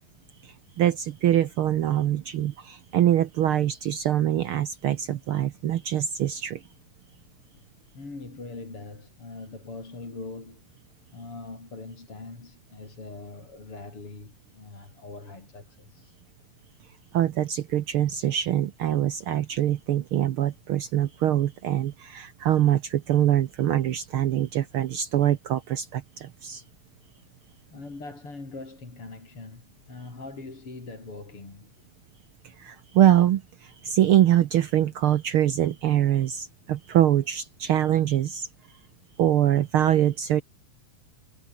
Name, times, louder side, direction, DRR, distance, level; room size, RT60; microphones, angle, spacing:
voice 1, 0.4-6.6 17.1-26.6 32.4-38.5 39.2-40.4, right 11 dB, 70° right, 1.3 m, -24 dB
voice 2, 7.9-10.8 11.1-16.2 27.7-31.8, left 3 dB, 45° left, 6.9 m, -42 dB
omnidirectional pair, 3.4 m